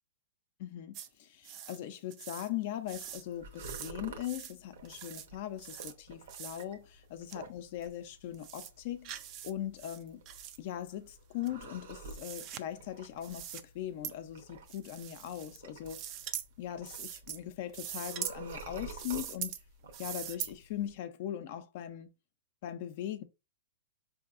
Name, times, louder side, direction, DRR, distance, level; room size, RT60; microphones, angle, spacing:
voice 1, 0.6-9.1 9.4-10.2 10.6-16.0 16.6-19.5 20.0-22.1 22.6-23.2, left 11 dB, 50° left, 0.5 m, -40 dB
sound 1, 0.9-1.1 1.4-1.8 2.1-2.5 2.9-3.2 3.6-3.9 4.2-4.5 4.8-5.3 5.6-5.9 6.3-6.6 7.3-7.4 7.8-7.9 8.3-8.7 9.0-9.5 9.8-10.6 11.4-12.6 13.2-13.6 14.0-14.1 14.7-15.6 15.9-16.5 16.9-17.4 17.7-18.4 18.9-19.6 19.9-20.5, right 10 dB, 35° right, 0.3 m, -42 dB
sound 2, 2.9-20.9, right 3 dB, 70° right, 0.8 m, -51 dB
4.6 x 2.7 x 2.4 m
hypercardioid pair, 145°, 0 cm